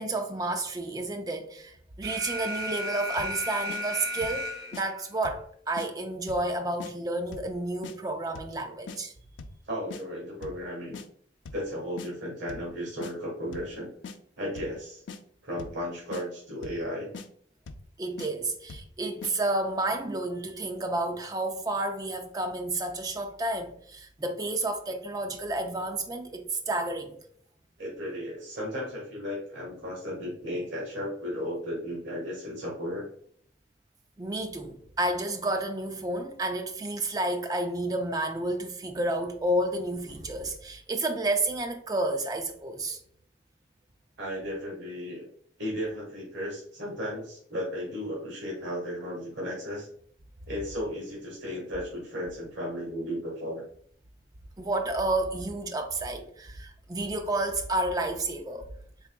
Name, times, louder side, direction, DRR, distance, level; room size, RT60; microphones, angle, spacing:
voice 1, 0.0-9.1 18.0-27.2 34.2-43.0 54.6-58.7, right 2 dB, 20° right, 0.4 m, -31 dB
Alarm, 2.0-5.0, equal, 55° right, 0.6 m, -34 dB
sound 1, 3.2-3.4 3.7-3.8 4.2-4.4 4.7-4.9 5.2-5.5 5.8-5.9 6.3-6.5 6.8-6.9 7.3-7.5 7.8-8.0 8.4-8.6 8.9-9.0 9.4-9.6 9.9-10.0 10.4-10.6 10.9-11.1 11.5-11.7 12.0-12.1 12.5-12.7 13.0-13.1 13.5-13.7 14.0-14.2 14.6-14.8 15.1-15.2 15.6-15.8 16.1-16.2 16.6-16.9 17.1-17.3 17.7-17.9 18.2-18.3 18.7-18.9 19.2-19.3, left 4 dB, 90° left, 0.4 m, -41 dB
voice 2, 9.6-11.0 11.5-13.9 14.4-15.0 15.4-17.1 27.8-33.0 44.2-45.2 45.6-49.9 50.5-53.6, equal, 85° right, 1.4 m, -35 dB
3.9 x 3.4 x 2.2 m
head